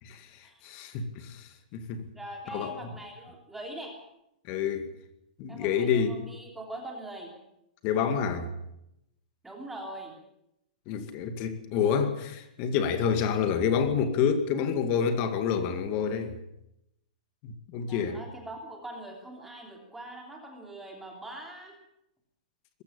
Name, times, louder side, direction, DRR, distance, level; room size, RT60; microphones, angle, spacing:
voice 1, 0.0-2.1 2.5-2.7 4.5-4.9 5.4-6.1 7.8-8.5 10.9-16.3 17.4-18.2, left 7 dB, 30° left, 2.2 m, -28 dB
voice 2, 2.1-3.9 5.5-7.4 9.4-10.2 17.8-21.7, right 1 dB, 5° right, 3.1 m, -42 dB
21.0 x 15.0 x 8.7 m
hypercardioid pair, 165°, 5 cm